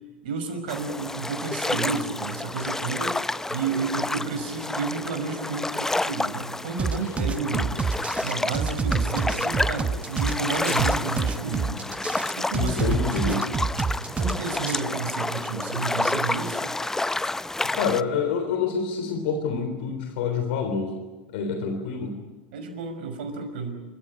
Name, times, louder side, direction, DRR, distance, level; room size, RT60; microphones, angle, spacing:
voice 1, 0.2-3.2 3.5-7.8 8.2-11.8 12.4-13.6 14.1-16.8 22.5-23.8, right 4 dB, 70° right, 6 dB, 5.9 m, -31 dB
sound 1, 0.7-18.0, left 2 dB, 10° left, 0.7 m, -30 dB
sound 2, 6.8-14.8, right 5 dB, 20° right, 1.1 m, -27 dB
voice 2, 12.5-13.4 17.7-21.0 21.3-22.2, left 5 dB, 70° left, 6 dB, 3.5 m, -27 dB
28.0 x 14.5 x 9.9 m, 1.2 s
hypercardioid pair, 90°, 6 cm